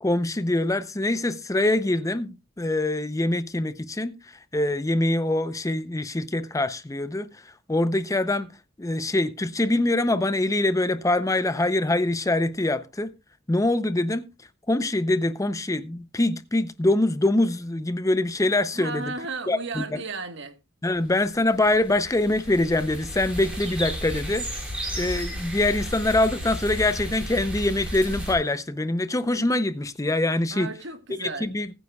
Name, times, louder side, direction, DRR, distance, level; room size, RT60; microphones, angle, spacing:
voice 1, 0.0-8.5 8.8-13.1 13.5-14.3 14.7-19.1 19.5-20.0 20.8-24.5 25.0-30.7 31.2-31.7, left 2 dB, 15° left, 0.6 m, -24 dB
voice 2, 18.7-20.6 30.5-31.5, right 3 dB, 65° right, 1.4 m, -34 dB
sound 1, 21.3-28.3, equal, 5° right, 5.0 m, -33 dB
20.0 x 9.5 x 2.3 m
head